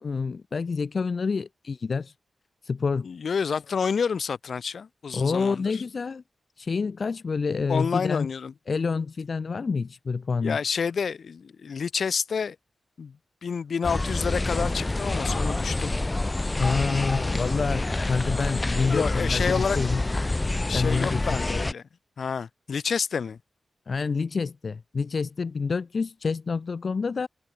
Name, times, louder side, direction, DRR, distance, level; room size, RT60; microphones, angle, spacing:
voice 1, 0.0-2.1 2.6-3.1 5.1-6.2 6.6-8.3 8.7-10.6 16.6-20.0 20.7-21.6 23.9-27.3, left 5 dB, 55° left, 0.7 m, -28 dB
voice 2, 3.0-5.8 7.7-8.5 10.4-12.6 13.0-13.2 13.4-15.9 18.9-19.8 20.7-21.8 22.2-23.4, left 6 dB, 70° left, 1.2 m, -29 dB
sound 1, 13.8-21.7, left 2 dB, 20° left, 2.0 m, -27 dB
wide cardioid pair, 110°, 0 cm